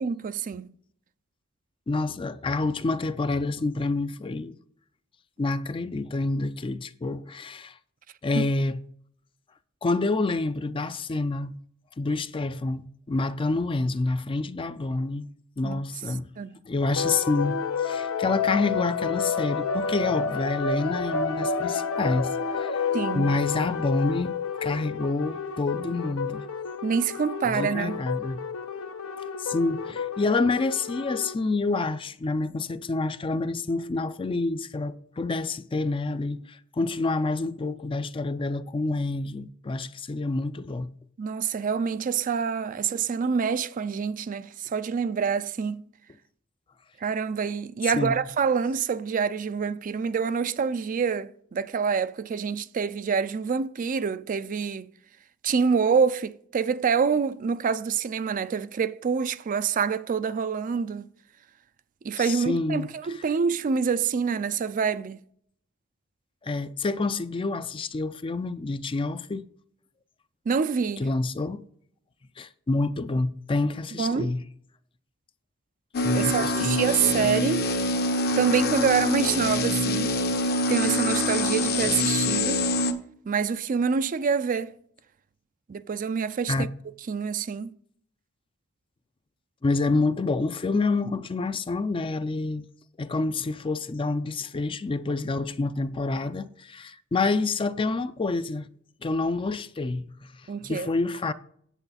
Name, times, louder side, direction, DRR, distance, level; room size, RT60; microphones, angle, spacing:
voice 1, 0.0-0.7 8.4-8.5 15.6-15.9 16.4-16.6 22.9-23.3 26.8-28.0 41.2-45.8 47.0-54.9 55.4-61.1 62.0-65.2 70.5-71.0 74.0-74.3 76.1-77.6 78.4-80.2 80.4-82.6 83.3-84.7 85.7-86.7 87.1-87.8 100.5-100.9, right 6 dB, 40° right, 0.4 m, -26 dB
voice 2, 1.9-4.6 5.4-7.8 8.2-8.8 9.8-11.6 12.0-15.3 15.6-16.3 16.7-22.8 23.1-26.4 27.5-28.4 29.4-40.9 47.9-48.3 62.2-63.2 66.4-69.4 71.0-71.6 72.4-74.4 76.0-76.8 86.5-86.6 89.6-92.7 93.0-98.7 99.0-100.3 100.6-101.3, left 3 dB, 25° left, 0.4 m, -28 dB
sound 1, 17.0-31.3, left 5 dB, 80° left, 0.7 m, -30 dB
sound 2, 75.9-82.9, left 1 dB, 50° left, 0.8 m, -25 dB
9.0 x 7.9 x 4.1 m
head